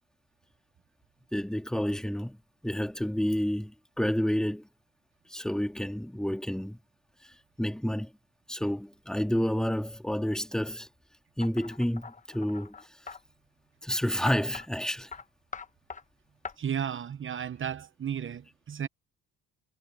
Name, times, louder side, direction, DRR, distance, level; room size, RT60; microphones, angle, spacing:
voice 1, 1.3-2.4 2.6-4.7 5.3-6.8 7.6-8.1 8.5-10.9 11.4-12.7 13.8-15.1, equal, ahead, 2.1 m, -29 dB
sound 1, 11.4-13.2 14.3-14.7 15.1-15.2 15.5-16.0 16.4-16.5, left 5 dB, 25° left, 1.1 m, -42 dB
voice 2, 16.6-18.9, right 8 dB, 40° right, 1.0 m, -34 dB
cardioid pair, 90°, 30 cm